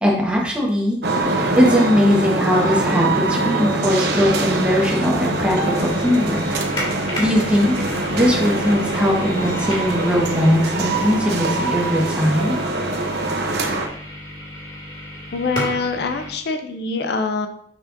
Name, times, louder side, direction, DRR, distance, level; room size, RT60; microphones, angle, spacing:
voice 1, 0.0-1.0 1.3-6.4 6.7-7.9 8.1-12.6, equal, 5° right, -3 dB, 1.4 m, -20 dB
sound 1, 1.0-13.9, right 2 dB, 60° right, 0.8 m, -23 dB
sound 2, 1.2-16.3, left 1 dB, 30° left, 2.3 m, -32 dB
Animal, 2.1-2.2 2.4-3.2 5.4-6.3 8.3-9.6, right 1 dB, 25° right, 1.4 m, -38 dB
voice 2, 15.3-17.5, left 4 dB, 60° left, 7 dB, 0.5 m, -24 dB
7.1 x 5.6 x 2.6 m, 0.67 s
head